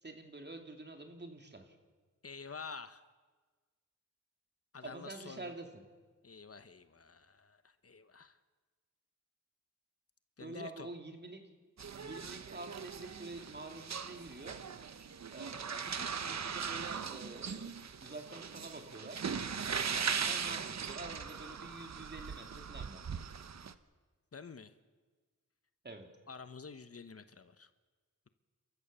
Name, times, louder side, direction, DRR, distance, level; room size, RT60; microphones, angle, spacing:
voice 1, 0.0-1.8 4.8-5.8 10.4-11.5 12.0-14.6 15.3-17.7 18.0-19.2 20.2-23.1 25.8-26.1, right 2 dB, 35° right, 4 dB, 2.8 m, -47 dB
voice 2, 2.2-3.0 4.7-5.5 6.2-8.4 10.4-10.9 24.3-24.7 26.3-27.7, left 5 dB, 50° left, 11 dB, 1.0 m, -49 dB
sound 1, 11.8-23.7, right 6 dB, 60° right, 1.0 m, -39 dB
30.0 x 14.0 x 6.9 m, 1.4 s
wide cardioid pair, 70°, 31 cm